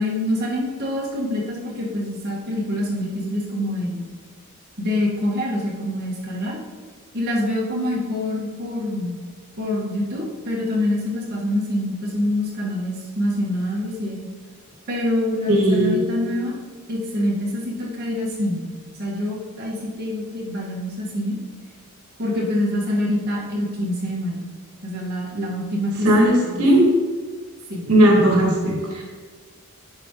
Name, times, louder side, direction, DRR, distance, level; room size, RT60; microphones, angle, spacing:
voice 1, 0.0-4.0 4.8-6.6 7.1-9.2 9.6-14.3 14.9-16.5 16.9-18.7 19.0-21.4 22.2-24.4 24.8-26.1 26.4-26.7 27.7-27.9, left 1 dB, 45° right, -5 dB, 1.6 m, -25 dB
voice 2, 15.5-16.0 26.0-26.8 27.8-29.0, right 1 dB, 85° right, -1 dB, 1.5 m, -17 dB
10.5 x 5.0 x 3.0 m, 1.5 s
head